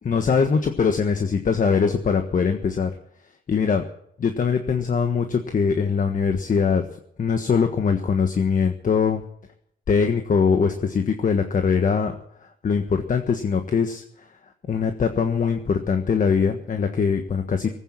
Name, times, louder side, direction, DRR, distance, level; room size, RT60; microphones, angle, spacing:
voice 1, 0.0-2.9 3.5-3.8 4.2-6.9 7.2-9.2 9.9-12.1 12.6-14.0 14.7-17.8, left 6 dB, 40° left, 6 dB, 1.4 m, -22 dB
19.0 x 9.2 x 7.5 m, 0.71 s
cardioid pair, 90°, 20 cm